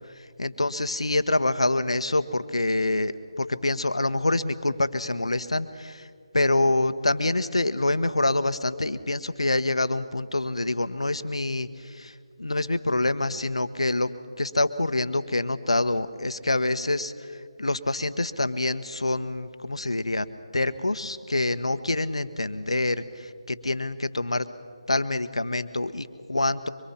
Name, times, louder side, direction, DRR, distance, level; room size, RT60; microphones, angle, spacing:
voice 1, 0.4-6.1 6.3-14.1 14.4-20.3 20.5-24.5 24.9-26.7, left 2 dB, 90° left, 11 dB, 1.1 m, -26 dB
24.0 x 23.5 x 5.7 m, 2.1 s
figure-of-eight pair, 160°, 3 cm